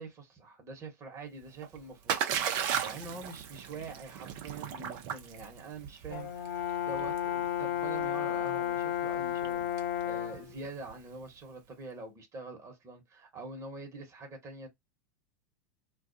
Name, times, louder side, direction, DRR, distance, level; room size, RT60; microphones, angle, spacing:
voice 1, 0.0-14.7, right 3 dB, 30° right, 1.2 m, -45 dB
Splash splatter, 1.4-11.2, right 8 dB, 50° right, 0.7 m, -37 dB
Brass instrument, 6.1-10.5, left 10 dB, 65° left, 0.8 m, -32 dB
2.3 x 2.3 x 2.6 m
hypercardioid pair, 90°, 10 cm